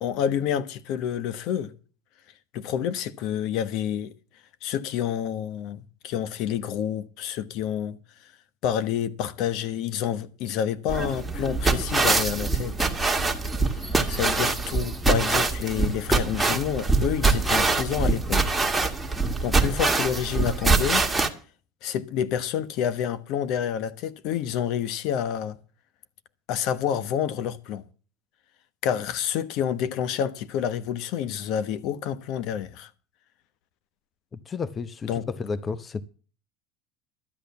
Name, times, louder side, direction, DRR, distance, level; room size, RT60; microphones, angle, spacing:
voice 1, 0.0-1.7 2.5-4.1 4.6-8.0 8.6-12.9 14.1-18.6 19.4-21.1 21.8-25.6 26.5-27.8 28.8-32.9 35.1-35.3, left 9 dB, 60° left, 1.1 m, -28 dB
sound 1, 10.9-21.3, right 3 dB, 10° right, 1.8 m, -24 dB
voice 2, 34.5-36.0, left 5 dB, 30° left, 0.8 m, -31 dB
12.5 x 8.4 x 6.9 m
supercardioid pair, 100°, 0 cm